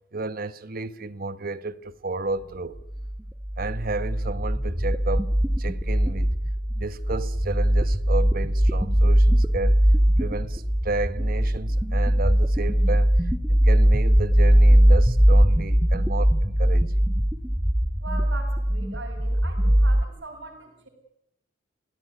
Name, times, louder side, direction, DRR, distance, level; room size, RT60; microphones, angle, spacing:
voice 1, 0.1-2.8 3.6-5.3 5.6-6.3 6.8-9.8 10.2-16.9, right 3 dB, 50° right, 1.2 m, -32 dB
sound 1, 2.9-20.0, equal, 10° right, 1.5 m, -20 dB
voice 2, 18.0-20.9, right 3 dB, 70° right, 6.8 m, -40 dB
28.0 x 18.5 x 9.6 m
head